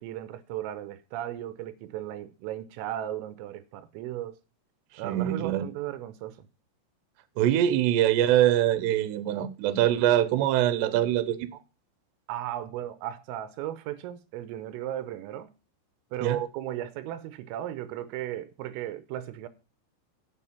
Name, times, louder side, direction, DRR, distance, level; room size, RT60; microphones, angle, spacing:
voice 1, 0.0-4.4 5.0-6.5 12.3-15.5 16.1-19.5, right 12 dB, 90° right, 3.5 m, -36 dB
voice 2, 5.0-5.7 7.4-11.5 16.2-16.4, right 12 dB, 70° right, 2.8 m, -23 dB
8.3 x 8.0 x 7.0 m
omnidirectional pair, 5.8 m